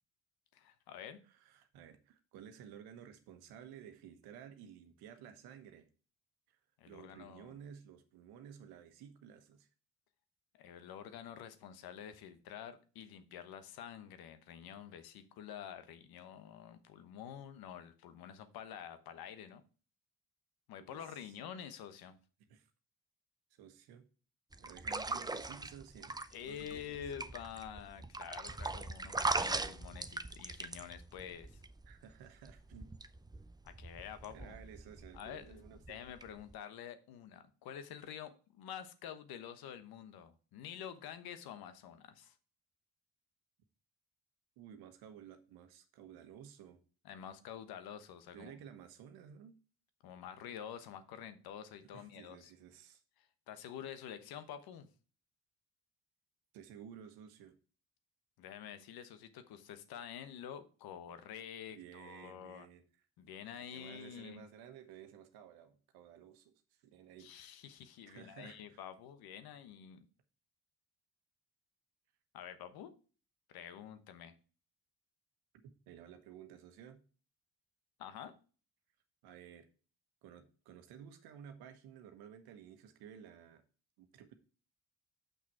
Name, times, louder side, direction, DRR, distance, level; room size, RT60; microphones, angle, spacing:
voice 1, 0.5-1.2 6.8-7.6 10.6-19.6 20.7-22.2 26.3-31.6 33.6-34.6 35.1-42.3 47.0-48.5 50.0-52.5 53.2-54.9 58.4-62.7 63.2-64.5 67.2-70.0 72.3-72.9 73.5-74.3 78.0-78.3, left 9 dB, 75° left, 1.1 m, -48 dB
voice 2, 1.3-5.9 6.5-6.6 6.9-9.7 20.8-21.3 22.5-22.7 23.5-24.1 24.6-27.1 28.5-28.6 31.8-33.0 34.0-36.0 44.6-46.8 48.3-49.6 51.8-53.0 56.5-57.6 61.7-62.8 63.6-67.3 68.1-68.8 75.9-77.0 79.2-79.7 80.2-83.6 84.0-84.3, right 8 dB, 80° right, 1.1 m, -54 dB
sound 1, 24.5-36.5, right 3 dB, 10° right, 0.6 m, -41 dB
6.7 x 6.1 x 4.7 m
hypercardioid pair, 50°, 37 cm